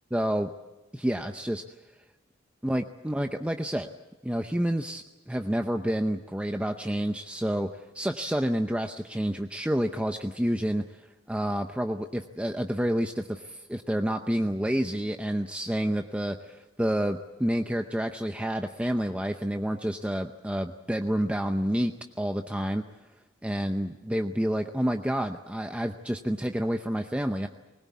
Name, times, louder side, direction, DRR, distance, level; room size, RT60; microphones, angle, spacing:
voice 1, 0.1-0.5 0.9-1.6 2.6-3.9 4.2-10.8 11.3-22.8 23.4-27.5, equal, 5° right, 6 dB, 0.7 m, -29 dB
21.0 x 20.0 x 8.4 m, 1.1 s
head